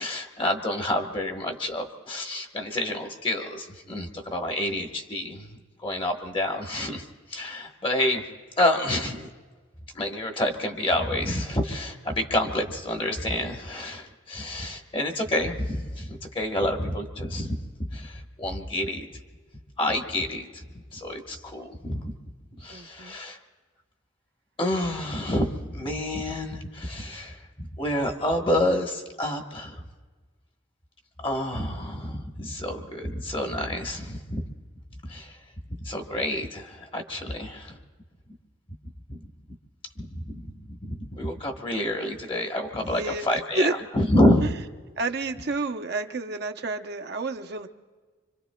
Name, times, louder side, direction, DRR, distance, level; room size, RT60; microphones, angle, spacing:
voice 1, 0.0-8.3 8.6-9.3 9.9-19.1 19.8-20.7 20.9-22.2 22.6-23.4 24.6-29.8 31.2-34.4 35.1-35.4 35.8-37.8 40.0-43.7 43.9-44.4, left 1 dB, 25° left, 3 dB, 1.1 m, -28 dB
voice 2, 22.7-23.2 42.8-43.2 43.5-43.7 45.0-47.7, right 2 dB, 55° right, 6 dB, 0.7 m, -30 dB
25.5 x 25.5 x 2.2 m, 1.4 s
head